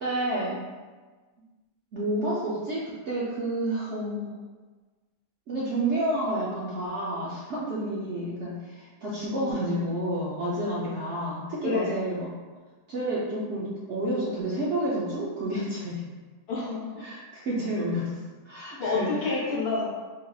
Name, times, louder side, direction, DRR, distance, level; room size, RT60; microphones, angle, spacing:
voice 1, 0.0-0.6 1.9-4.3 5.5-12.3 12.9-16.0 17.0-18.2 18.4-19.3, right 1 dB, 60° right, -7 dB, 0.7 m, -30 dB
voice 2, 11.6-12.1 16.5-17.0 18.8-19.8, left 4 dB, 70° left, -4 dB, 1.4 m, -28 dB
3.8 x 3.4 x 2.3 m, 1.3 s
omnidirectional pair, 1.7 m